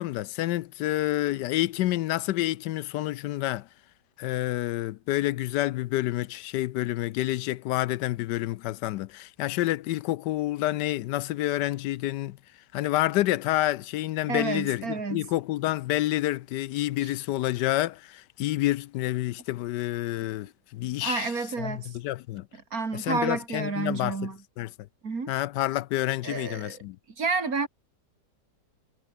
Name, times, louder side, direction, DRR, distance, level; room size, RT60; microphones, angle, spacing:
voice 1, 0.0-3.7 4.2-12.4 12.7-21.3 21.6-22.5 22.9-24.2 24.6-24.7 25.3-27.0, left 15 dB, 80° left, 1.2 m, -28 dB
voice 2, 14.3-15.2 17.0-17.1 21.0-21.9 22.5-24.4 25.0-25.3 26.2-26.8 27.2-27.7, right 4 dB, 55° right, 3.2 m, -30 dB
omnidirectional pair, 1.8 m